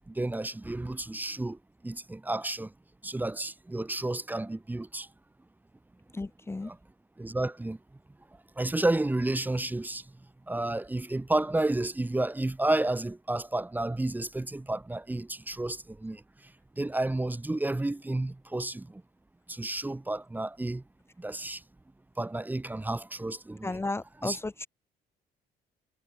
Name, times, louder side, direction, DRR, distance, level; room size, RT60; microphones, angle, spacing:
voice 1, 0.1-1.6 1.8-2.7 3.0-5.1 6.6-6.8 7.2-7.8 8.6-10.0 10.5-16.2 16.8-19.0 19.5-20.8 21.2-21.6 22.2-23.7 24.2-24.4, right 2 dB, 10° right, 1.8 m, -31 dB
voice 2, 6.1-6.7 23.6-24.7, left 2 dB, 15° left, 1.6 m, -34 dB
cardioid pair, 110°, 17 cm